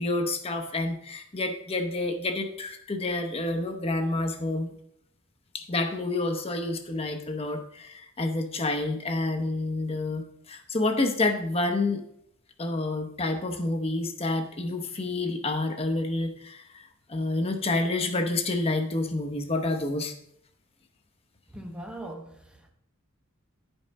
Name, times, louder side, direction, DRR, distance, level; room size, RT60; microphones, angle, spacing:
voice 1, 0.0-4.7 5.5-12.0 12.6-16.8 17.1-20.1, left 2 dB, 30° left, 5 dB, 0.7 m, -28 dB
voice 2, 21.5-22.7, right 1 dB, 5° right, 3 dB, 0.7 m, -40 dB
10.0 x 5.4 x 4.0 m, 0.73 s
head